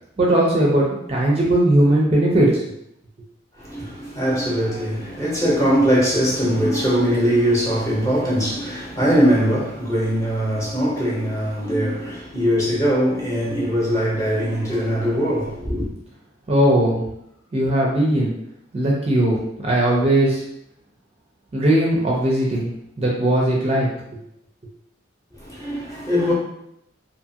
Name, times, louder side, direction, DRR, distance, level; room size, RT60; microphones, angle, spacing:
voice 1, 0.2-2.6 16.5-17.0 17.5-18.3 18.7-19.4 19.6-20.4 21.5-23.9, right 1 dB, 30° right, 0.4 m, -18 dB
voice 2, 3.6-15.9 25.4-26.3, equal, 15° left, 0.8 m, -21 dB
2.7 x 2.4 x 2.7 m
head